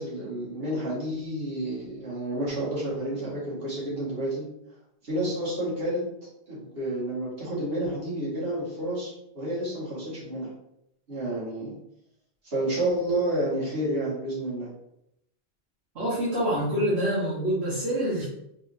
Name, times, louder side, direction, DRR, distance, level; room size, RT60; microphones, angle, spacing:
voice 1, 0.0-4.5 5.0-6.0 6.5-10.5 11.1-11.8 12.4-14.7, right 1 dB, 65° right, -8 dB, 2.0 m, -30 dB
voice 2, 15.9-18.2, equal, 85° right, -10 dB, 1.5 m, -26 dB
4.2 x 3.5 x 2.7 m, 0.79 s
omnidirectional pair, 1.1 m